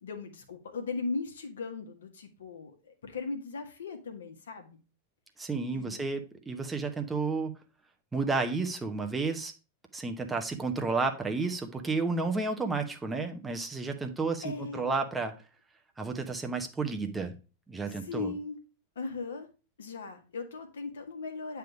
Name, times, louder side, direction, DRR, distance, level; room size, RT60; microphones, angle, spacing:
voice 1, 0.0-4.7 5.7-6.1 14.4-14.9 17.8-18.6 18.9-19.5 19.8-21.6, left 4 dB, 65° left, 4 dB, 1.4 m, -38 dB
voice 2, 5.4-7.5 8.1-9.5 9.9-15.3 16.0-17.3 17.7-18.3, right 3 dB, 10° right, 4 dB, 0.9 m, -31 dB
9.1 x 3.5 x 4.8 m, 0.32 s
figure-of-eight pair, 90°, 0 cm